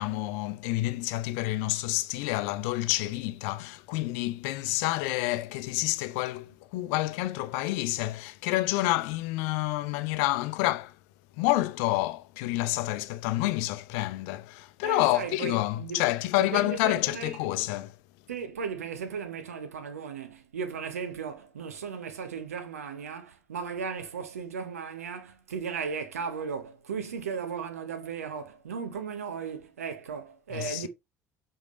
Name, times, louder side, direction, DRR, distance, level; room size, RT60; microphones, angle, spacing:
voice 1, 0.0-11.0 11.4-18.0 30.5-30.9, left 17 dB, 65° left, 0.6 m, -28 dB
voice 2, 14.8-16.0 16.4-17.4 18.3-30.9, right 6 dB, 80° right, 1.1 m, -36 dB
8.1 x 3.7 x 3.2 m
figure-of-eight pair, 60°, 8 cm